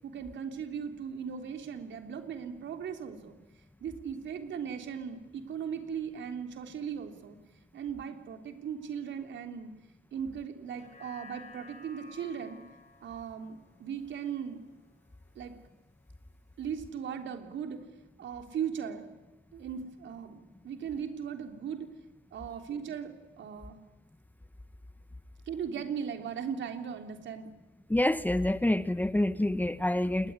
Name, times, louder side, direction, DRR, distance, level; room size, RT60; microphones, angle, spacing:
voice 1, 0.0-3.4 3.8-7.4 7.7-9.7 10.1-12.6 13.0-14.6 15.4-15.5 16.6-17.8 18.2-19.1 19.5-21.9 22.3-23.8 25.5-27.5, right 7 dB, 65° right, 6 dB, 3.5 m, -38 dB
sound 1, 10.7-15.2 15.7-15.8, left 3 dB, 35° left, 5.6 m, -54 dB
voice 2, 27.9-30.3, left 1 dB, 10° left, 14 dB, 0.9 m, -27 dB
28.0 x 21.0 x 9.8 m, 1.1 s
cardioid pair, 90°, 20 cm